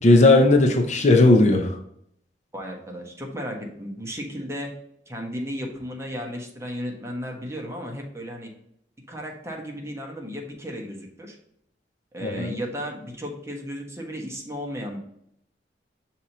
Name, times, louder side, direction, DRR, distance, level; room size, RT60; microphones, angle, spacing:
voice 1, 0.0-1.8 12.2-12.5, left 2 dB, 40° left, 3 dB, 0.6 m, -16 dB
voice 2, 2.5-4.7 5.1-8.5 9.1-11.4 12.1-15.0, equal, 15° right, 0 dB, 1.2 m, -34 dB
6.1 x 2.9 x 5.4 m, 0.72 s
head